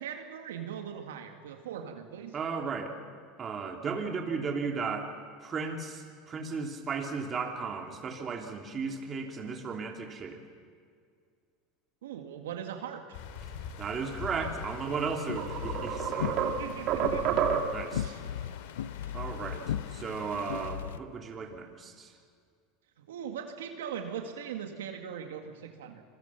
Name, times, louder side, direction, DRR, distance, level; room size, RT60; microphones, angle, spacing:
voice 1, 0.0-2.3 12.0-13.0 16.4-17.5 17.9-18.2 19.1-19.2 23.0-26.0, right 8 dB, 85° right, 4 dB, 2.0 m, -40 dB
voice 2, 2.3-2.9 3.4-5.1 5.4-10.4 13.8-16.5 17.7-18.1 19.1-19.6 19.9-22.1, right 5 dB, 30° right, 2 dB, 3.1 m, -35 dB
sound 1, 13.1-20.7, left 6 dB, 70° left, 2.8 m, -45 dB
sound 2, 14.8-14.9 15.4-18.0, right 7 dB, 50° right, 2.4 m, -29 dB
sound 3, 14.9-21.0, left 10 dB, 90° left, 0.7 m, -37 dB
27.0 x 21.5 x 5.9 m, 2.1 s
hypercardioid pair, 100°, 0 cm